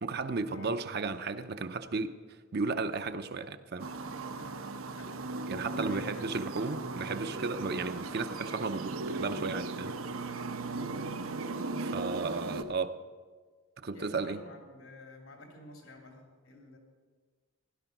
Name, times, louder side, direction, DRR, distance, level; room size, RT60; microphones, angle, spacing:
voice 1, 0.0-2.1 2.5-3.9 5.5-10.0 11.8-12.9 13.8-14.4, right 4 dB, 50° right, 9 dB, 0.6 m, -34 dB
sound 1, 3.8-12.6, right 3 dB, 85° right, 0.9 m, -37 dB
voice 2, 4.3-6.4 10.6-10.9 13.9-16.8, left 1 dB, 80° left, 2 dB, 3.1 m, -51 dB
16.0 x 11.0 x 6.0 m, 1.5 s
head